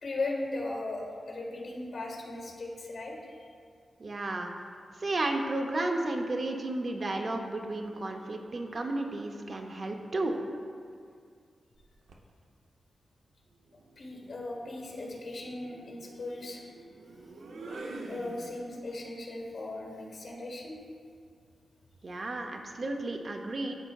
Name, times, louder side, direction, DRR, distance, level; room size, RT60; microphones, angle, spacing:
voice 1, 0.0-3.1 14.0-16.6 18.1-20.8, left 2 dB, 70° left, -1 dB, 1.6 m, -37 dB
voice 2, 4.0-4.5 5.0-10.4 22.0-23.8, right 2 dB, 45° right, 3 dB, 0.5 m, -33 dB
sound 1, 11.8-12.3 13.7-18.9, right 2 dB, 90° right, 0.6 m, -47 dB
12.5 x 4.4 x 2.3 m, 2.2 s
wide cardioid pair, 130°, 0 cm